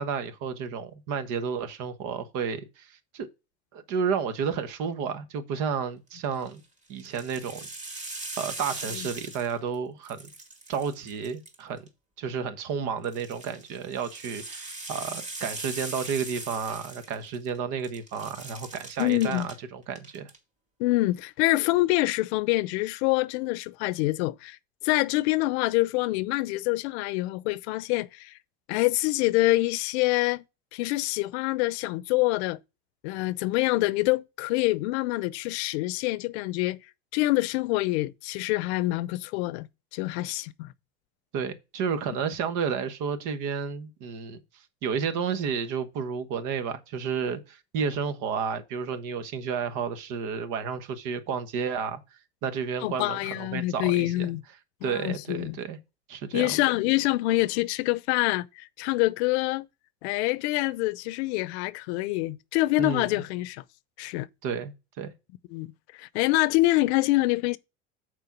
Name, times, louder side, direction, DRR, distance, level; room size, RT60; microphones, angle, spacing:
voice 1, 0.0-2.9 3.1-3.3 3.7-6.6 6.9-7.7 8.4-10.3 10.7-11.9 12.2-20.3 41.3-44.4 44.8-52.0 52.4-54.3 54.8-55.8 56.1-56.6 62.8-63.2 64.4-65.1, right 6 dB, 65° right, 1.3 m, -31 dB
sound 1, 6.2-6.5 7.0-9.8 10.0-11.9 13.0-17.6 17.8-19.6 19.9-20.4, right 2 dB, 20° right, 2.4 m, -40 dB
voice 2, 19.0-19.5 20.8-24.6 24.8-28.3 28.7-30.4 30.7-32.6 33.0-36.8 37.1-39.7 39.9-40.7 52.8-54.4 54.8-55.6 56.3-59.7 60.0-63.6 64.0-64.3 65.5-65.7 66.0-67.6, left 19 dB, 75° left, 0.7 m, -26 dB
6.8 x 4.6 x 5.9 m
supercardioid pair, 95°, 33 cm